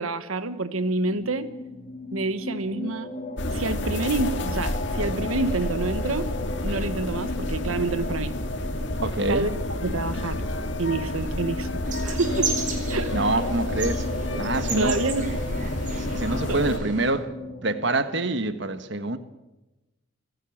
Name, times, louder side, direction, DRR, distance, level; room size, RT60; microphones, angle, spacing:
voice 1, 0.0-1.5 2.1-3.1 3.5-6.3 6.6-8.3 9.3-9.5 9.8-10.4 10.8-12.6 12.9-13.2 14.7-15.4 16.5-16.6, right 3 dB, 85° right, 12 dB, 1.3 m, -28 dB
sound 1, 1.0-18.3, left 2 dB, 35° left, 2.0 m, -37 dB
sound 2, 3.4-16.8, left 1 dB, 55° left, 2.5 m, -30 dB
voice 2, 9.0-9.5 13.1-14.1 14.3-14.9 16.0-17.3 17.6-19.2, right 2 dB, 55° right, 11 dB, 1.4 m, -26 dB
sound 3, 11.9-17.1, right 3 dB, 35° right, 4.7 m, -33 dB
27.5 x 17.5 x 7.3 m, 1.0 s
head